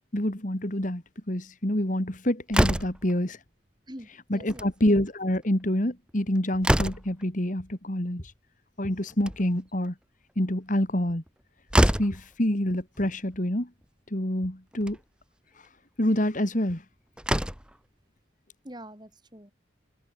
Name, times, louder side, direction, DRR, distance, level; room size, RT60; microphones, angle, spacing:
voice 1, 0.1-3.4 4.3-8.2 8.8-9.9 10.4-11.2 11.8-13.7 14.1-15.0 16.0-16.8, left 1 dB, 40° left, 2.4 m, -27 dB
Slam, 2.5-3.1 4.4-4.7 5.1-5.2 5.4-5.5 6.1-7.2 9.0-9.7 11.3-11.4 11.7-12.2 13.3-13.4 13.8-13.9 14.7-15.0 16.7-16.8 17.2-17.8, equal, 5° right, 1.9 m, -25 dB
voice 2, 3.9-4.7 18.6-19.5, equal, 20° right, 7.7 m, -44 dB
head